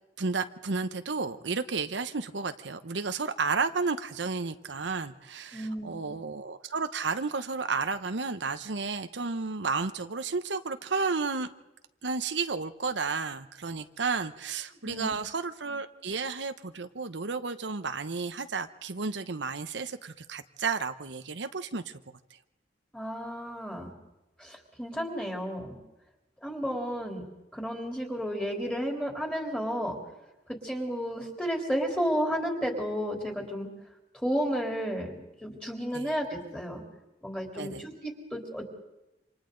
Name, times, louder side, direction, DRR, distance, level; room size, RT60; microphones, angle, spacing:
voice 1, 0.2-11.5 12.0-22.0 35.9-36.1 37.5-37.8, right 4 dB, 80° right, 9 dB, 0.9 m, -32 dB
voice 2, 5.5-6.2 14.8-15.2 22.9-23.9 24.4-25.8 26.4-27.2 27.5-30.0 30.5-33.7 34.2-36.8 37.2-38.6, equal, 5° left, 1 dB, 3.6 m, -32 dB
28.0 x 26.0 x 3.9 m, 0.96 s
head